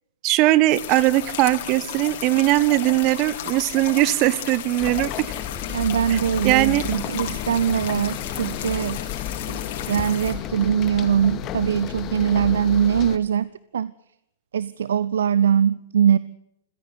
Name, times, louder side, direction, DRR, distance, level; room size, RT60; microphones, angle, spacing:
voice 1, 0.2-5.3 6.1-6.2 6.4-6.8, right 17 dB, 35° right, 21 dB, 1.0 m, -20 dB
sound 1, 0.7-10.3, left 10 dB, 50° left, 5.0 m, -34 dB
sound 2, 4.8-13.2, left 10 dB, 30° left, 2.2 m, -32 dB
voice 2, 5.7-9.0 9.5-13.9 14.5-16.2, right 8 dB, 60° right, 19 dB, 0.8 m, -22 dB
sound 3, 6.1-12.7, left 6 dB, 80° left, 4.8 m, -43 dB
27.5 x 16.5 x 8.2 m, 0.83 s
figure-of-eight pair, 105°, 0 cm